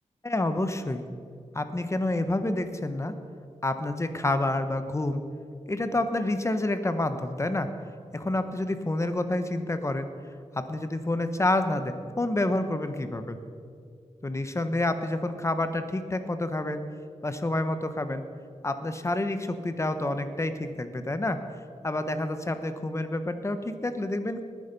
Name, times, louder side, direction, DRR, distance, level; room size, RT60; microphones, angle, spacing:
voice 1, 0.2-1.0 1.5-3.2 3.6-5.2 5.7-7.7 8.1-10.1 10.5-13.4 14.2-16.8 17.2-18.2 18.6-21.4 21.8-24.4, left 2 dB, 20° left, 9 dB, 1.0 m, -28 dB
19.5 x 10.0 x 5.3 m, 2.2 s
wide cardioid pair, 115°, 13 cm